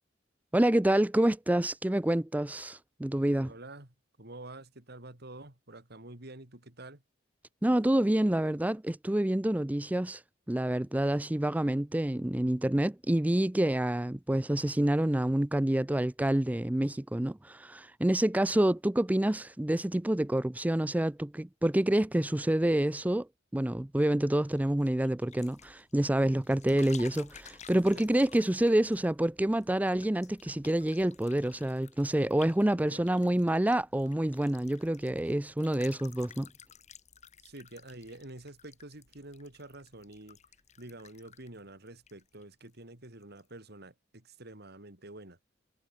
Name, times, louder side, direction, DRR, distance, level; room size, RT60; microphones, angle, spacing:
voice 1, 0.5-3.5 7.6-10.2 10.5-23.3 23.5-36.5, right 1 dB, 10° right, 0.5 m, -27 dB
voice 2, 3.3-7.0 26.2-26.5 27.9-28.1 32.8-33.1 37.4-40.4 40.8-45.4, right 2 dB, 60° right, 3.7 m, -48 dB
sound 1, 24.4-42.8 43.0-43.5, left 7 dB, 40° left, 1.6 m, -55 dB
head